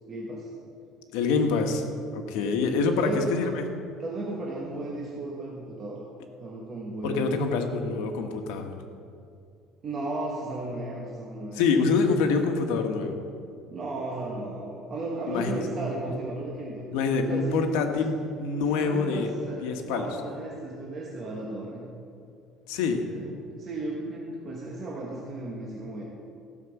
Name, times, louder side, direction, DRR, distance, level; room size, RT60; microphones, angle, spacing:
voice 1, 0.1-0.5 2.4-2.7 3.0-3.6 4.0-6.0 6.4-7.3 9.8-11.7 12.0-12.1 13.7-16.9 17.3-17.7 18.0-18.2 18.7-21.9 23.1-26.0, right 2 dB, 30° right, -3 dB, 1.2 m, -35 dB
voice 2, 1.1-1.8 2.1-3.7 7.0-8.7 11.5-13.2 15.3-15.6 16.9-19.3 19.6-20.1 22.7-23.0, left 4 dB, 85° left, 5 dB, 1.3 m, -26 dB
15.0 x 5.9 x 7.1 m, 2.4 s
cardioid pair, 175°, 0 cm